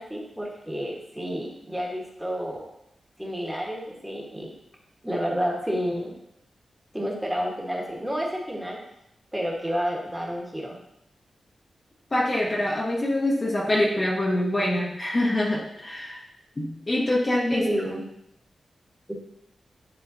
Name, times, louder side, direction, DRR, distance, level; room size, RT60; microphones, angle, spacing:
voice 1, 0.0-2.6 3.2-4.5 5.0-6.2 6.9-8.8 9.3-10.8 17.5-18.0 19.1-19.2, equal, 5° right, -2 dB, 1.2 m, -30 dB
voice 2, 12.1-16.2 16.6-17.7, left 1 dB, 25° left, -3 dB, 0.9 m, -25 dB
10.0 x 3.8 x 2.7 m, 0.81 s
wide cardioid pair, 130°, 0 cm